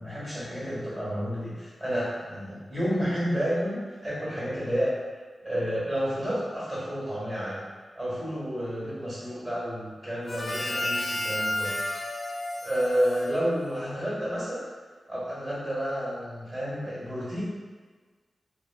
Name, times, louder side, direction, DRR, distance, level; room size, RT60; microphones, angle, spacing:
voice 1, 0.0-4.9 5.4-7.6 7.9-11.7 12.6-14.6 15.1-17.4, equal, 25° right, -9 dB, 1.5 m, -30 dB
Harmonica, 10.2-14.0, left 1 dB, 35° left, 0.3 m, -32 dB
3.1 x 2.6 x 2.3 m, 1.4 s
wide cardioid pair, 140°, 0 cm